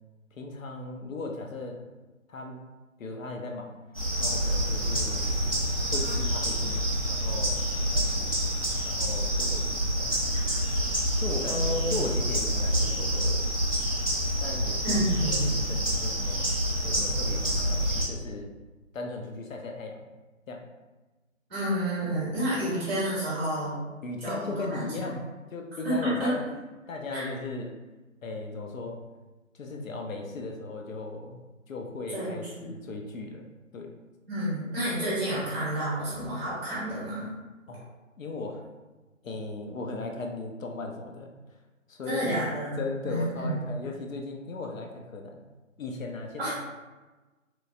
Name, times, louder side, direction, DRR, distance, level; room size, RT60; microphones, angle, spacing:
voice 1, 0.3-1.8 2.3-2.6 3.0-3.8 4.2-5.3 5.9-8.4 8.8-10.2 11.2-13.5 14.4-16.5 16.8-18.5 18.9-20.0 20.5-20.6 24.0-25.2 25.5-26.4 26.9-27.8 28.2-29.0 29.5-33.5 33.7-33.9 37.7-37.9 38.2-38.7 39.2-41.3 41.9-42.5 42.8-45.4 45.8-46.5, left 3 dB, 75° left, 2 dB, 0.6 m, -37 dB
sound 1, 3.9-18.0, equal, 30° left, 0.4 m, -27 dB
voice 2, 11.5-12.0 14.8-15.4 21.5-23.8 24.2-25.1 25.8-26.3 27.1-27.2 32.1-32.7 34.3-37.4 42.1-42.7 43.0-43.6 46.4-46.5, right 1 dB, 5° right, -10 dB, 0.8 m, -30 dB
3.1 x 2.2 x 2.5 m, 1.2 s
figure-of-eight pair, 155°, 40 cm